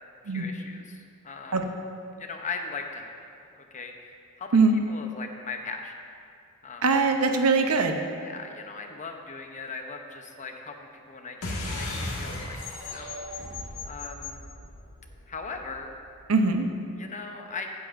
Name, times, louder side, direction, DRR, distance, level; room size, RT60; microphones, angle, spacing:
voice 1, 0.2-1.7 2.2-3.1 3.5-4.6 4.9-5.9 6.6-6.8 8.2-13.6 13.8-14.4 15.3-15.9 17.0-17.7, left 4 dB, 35° left, 4 dB, 0.8 m, -39 dB
voice 2, 6.8-8.0 16.3-16.7, right 4 dB, 85° right, 5 dB, 0.8 m, -21 dB
sound 1, 11.4-16.3, left 2 dB, 90° left, 1.9 m, -36 dB
15.5 x 8.1 x 2.6 m, 2.4 s
head